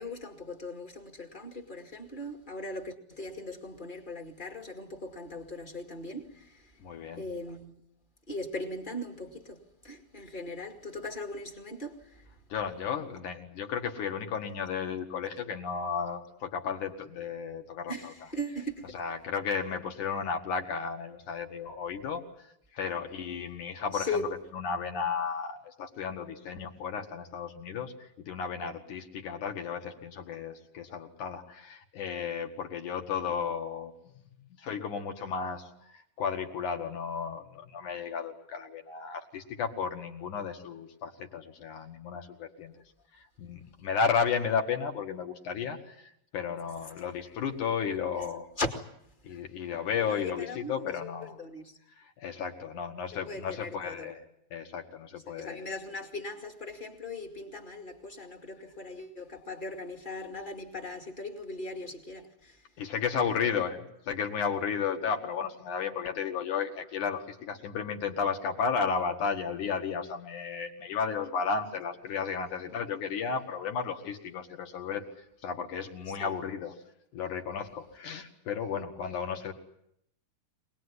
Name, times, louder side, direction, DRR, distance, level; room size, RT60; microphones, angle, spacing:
voice 1, 0.0-6.6 7.2-7.7 8.3-12.2 17.9-18.9 23.9-24.3 48.6-48.7 49.3-49.4 50.0-51.8 53.2-54.1 55.3-62.6 63.2-63.5 76.2-76.3, left 2 dB, 20° left, 1.7 m, -39 dB
voice 2, 6.8-7.2 12.5-18.1 18.9-22.5 22.7-33.9 34.6-42.7 43.1-48.5 49.2-51.4 52.0-54.2 54.5-55.7 62.8-75.1 75.4-76.8 77.1-79.5, left 6 dB, 60° left, 3.2 m, -33 dB
25.0 x 19.5 x 9.8 m
omnidirectional pair, 4.2 m